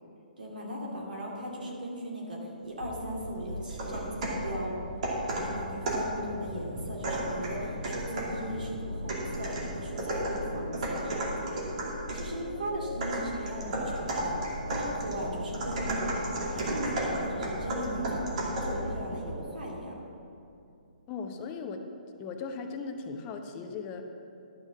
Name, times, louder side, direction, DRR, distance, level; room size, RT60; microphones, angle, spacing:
voice 1, 0.4-4.8 5.3-11.5 12.1-18.2 18.6-20.0, right 1 dB, 75° right, -2 dB, 2.8 m, -38 dB
sound 1, 2.8-19.3, equal, 90° right, 2.4 m, -40 dB
sound 2, 3.7-4.5 5.0-6.2 7.0-8.4 9.1-12.3 13.0-18.8, right 1 dB, 50° right, 2.5 m, -33 dB
voice 2, 21.1-21.9 22.2-24.0, left 5 dB, 25° left, 5 dB, 0.8 m, -38 dB
12.0 x 6.3 x 6.1 m, 2.6 s
figure-of-eight pair, 130°, 5 cm